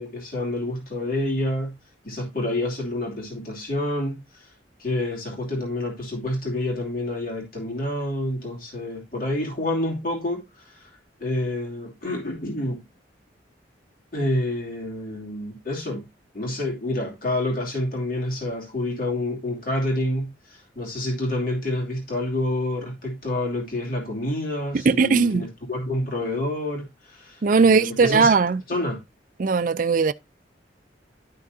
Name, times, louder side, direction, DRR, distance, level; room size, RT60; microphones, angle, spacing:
voice 1, 0.0-1.8 2.0-4.5 4.8-10.9 11.2-12.8 14.1-16.1 16.3-28.4 28.7-29.0, left 1 dB, 50° left, 2.8 m, -28 dB
voice 2, 24.9-25.4 27.4-28.6 29.4-30.1, right 4 dB, 45° right, 0.4 m, -18 dB
11.5 x 6.0 x 2.7 m
head